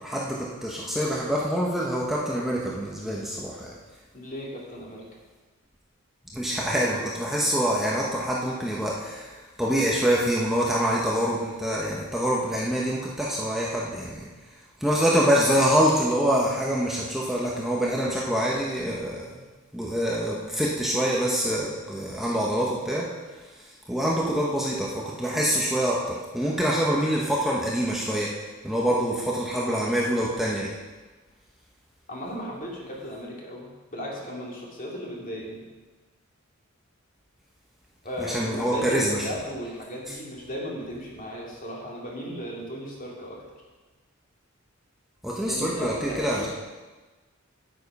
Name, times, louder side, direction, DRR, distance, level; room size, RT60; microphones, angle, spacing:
voice 1, 0.0-3.7 6.3-9.3 9.6-14.3 14.8-19.2 19.7-23.1 23.9-28.3 28.6-30.7 38.3-39.2 45.2-46.5, equal, ahead, -5 dB, 1.1 m, -25 dB
voice 2, 4.1-5.1 32.1-35.7 38.0-43.4 45.5-46.5, equal, 40° left, -3 dB, 2.6 m, -36 dB
9.4 x 9.0 x 5.4 m, 1.3 s
head